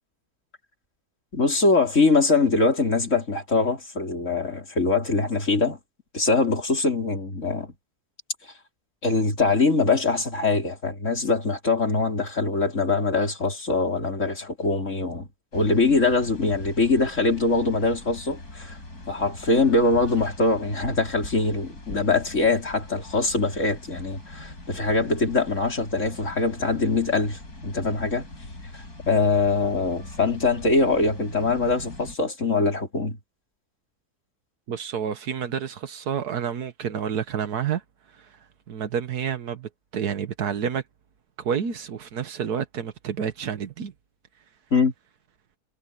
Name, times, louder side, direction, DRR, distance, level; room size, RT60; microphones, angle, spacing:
voice 1, 1.3-5.8 6.1-7.7 9.0-18.8 19.1-28.2 29.1-33.2 44.7-44.9, left 3 dB, 50° left, 4.5 m, -23 dB
sound 1, 15.5-32.2, left 2 dB, 75° left, 6.7 m, -42 dB
voice 2, 34.7-37.8 38.1-38.4 38.7-40.8 41.4-43.9, right 7 dB, 80° right, 1.7 m, -29 dB
omnidirectional pair, 1.6 m